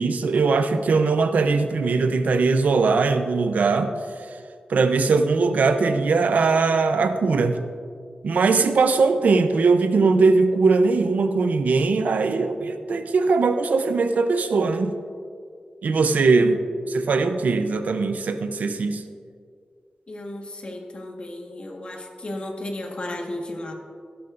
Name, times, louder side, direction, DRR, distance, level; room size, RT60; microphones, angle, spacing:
voice 1, 0.0-3.9 4.7-7.6 8.2-14.9 15.8-16.6 16.9-19.0, right 4 dB, 85° right, 8 dB, 0.7 m, -20 dB
voice 2, 20.1-23.7, left 1 dB, 45° left, 1 dB, 1.5 m, -34 dB
16.0 x 11.5 x 2.6 m, 2.2 s
wide cardioid pair, 105°, 3 cm